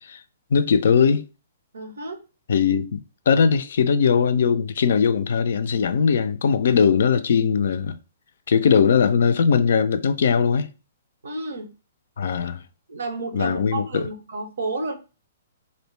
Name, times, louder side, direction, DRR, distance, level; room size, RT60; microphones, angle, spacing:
voice 1, 0.5-1.3 2.5-3.0 3.3-8.0 8.5-10.7 12.2-12.6 13.3-14.1, left 6 dB, 65° left, 0.3 m, -20 dB
voice 2, 1.7-2.2 11.2-11.7 12.9-15.0, right 2 dB, 75° right, 0.6 m, -31 dB
2.4 x 2.1 x 3.1 m
hypercardioid pair, 125°, 0 cm